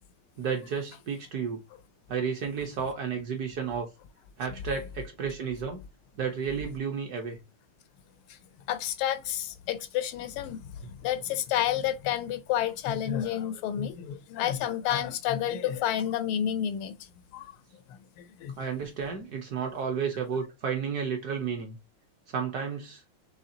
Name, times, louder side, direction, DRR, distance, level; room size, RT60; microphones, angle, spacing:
voice 1, 0.4-1.6 2.1-3.9 4.4-5.8 6.2-7.4 18.6-21.8 22.3-23.0, right 6 dB, 60° right, 1.1 m, -32 dB
voice 2, 8.7-17.0 17.3-17.5 18.2-18.5, left 10 dB, 85° left, 1.5 m, -30 dB
5.7 x 3.3 x 2.7 m
omnidirectional pair, 2.3 m